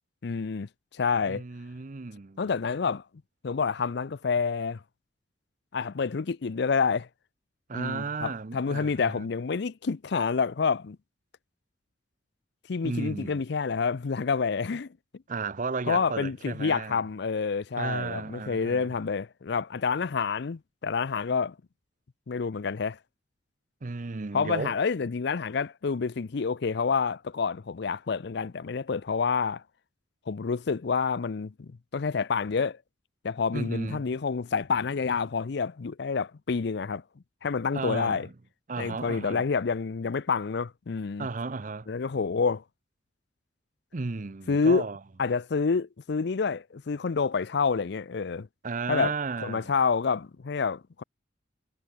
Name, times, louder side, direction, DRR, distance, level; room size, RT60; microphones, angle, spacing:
voice 1, 0.2-1.4 2.4-3.0 3.4-4.8 5.7-7.1 7.7-11.0 12.7-14.9 15.9-21.6 22.3-23.0 24.3-29.6 30.3-32.8 33.2-37.0 37.4-38.3 38.8-41.3 41.9-42.6 44.5-44.9 45.2-48.5 48.9-49.1 49.4-51.0, left 5 dB, 65° left, 0.5 m, -28 dB
voice 2, 1.3-2.5 7.7-9.2 12.8-13.4 15.3-17.0 17.8-18.9 23.8-24.8 33.5-34.1 37.7-38.3 38.7-39.4 41.2-41.9 43.9-45.0 48.6-49.7, right 4 dB, 45° right, 0.6 m, -34 dB
head